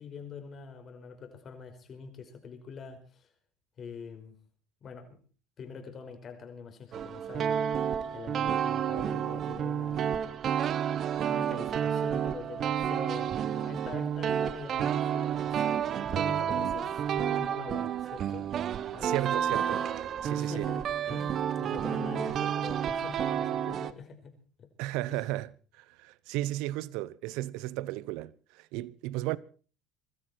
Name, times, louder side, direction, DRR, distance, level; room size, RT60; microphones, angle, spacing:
voice 1, 0.0-3.3 3.8-4.4 4.8-5.2 5.6-7.7 8.1-10.3 11.2-15.8 16.1-18.5 18.9-19.4 20.4-24.7 25.1-25.2, left 6 dB, 45° left, 5.4 m, -44 dB
sound 1, 6.9-23.9, right 9 dB, 50° right, 1.3 m, -30 dB
voice 2, 19.0-19.9 20.2-20.7 24.8-25.5 25.8-29.4, right 17 dB, 70° right, 0.8 m, -34 dB
23.5 x 13.5 x 4.6 m
supercardioid pair, 85°, 0 cm